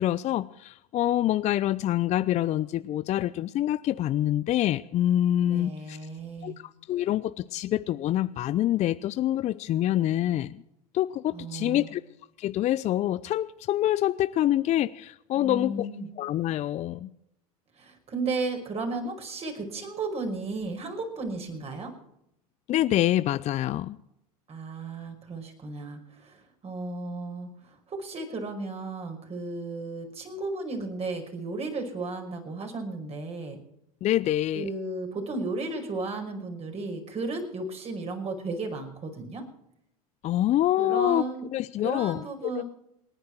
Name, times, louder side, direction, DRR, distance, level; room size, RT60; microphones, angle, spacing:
voice 1, 0.0-6.0 6.4-6.5 6.9-10.6 10.9-12.0 12.4-15.9 16.2-17.1 22.7-24.0 34.0-34.7 40.2-41.2 41.5-42.6, left 13 dB, 35° left, 15 dB, 0.6 m, -26 dB
voice 2, 5.5-6.6 11.3-11.9 15.3-16.1 17.7-21.9 24.5-33.6 34.5-39.5 40.8-41.5 41.8-42.6, right 3 dB, 30° right, 3 dB, 5.5 m, -34 dB
27.5 x 10.0 x 4.6 m, 0.80 s
hypercardioid pair, 80°, 20 cm